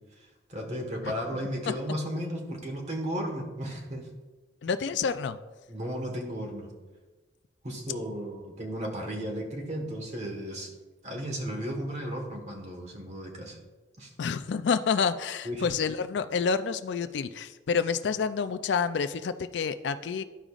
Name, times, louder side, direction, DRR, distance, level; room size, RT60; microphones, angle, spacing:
voice 1, 0.5-4.1 5.7-6.7 7.6-10.7 11.0-13.6 14.0-14.1 15.4-15.6, equal, 40° right, 1 dB, 1.4 m, -34 dB
voice 2, 4.6-5.4 14.2-20.2, left 6 dB, 70° left, 11 dB, 0.4 m, -28 dB
13.5 x 5.0 x 2.4 m, 1.2 s
head